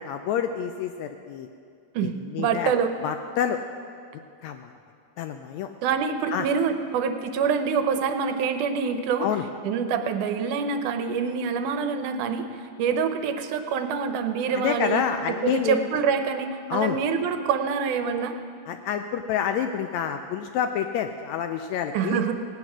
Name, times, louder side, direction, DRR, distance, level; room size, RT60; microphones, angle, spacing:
voice 1, 0.0-1.5 2.0-2.7 3.0-3.6 4.4-4.7 5.2-5.7 6.3-6.5 9.2-9.4 14.5-15.9 16.7-17.0 18.7-22.2, left 8 dB, 80° left, 7 dB, 1.6 m, -28 dB
voice 2, 2.4-2.9 5.8-9.3 9.6-18.4 21.9-22.3, right 6 dB, 75° right, 7 dB, 2.2 m, -26 dB
17.0 x 9.6 x 6.1 m, 2.4 s
omnidirectional pair, 3.7 m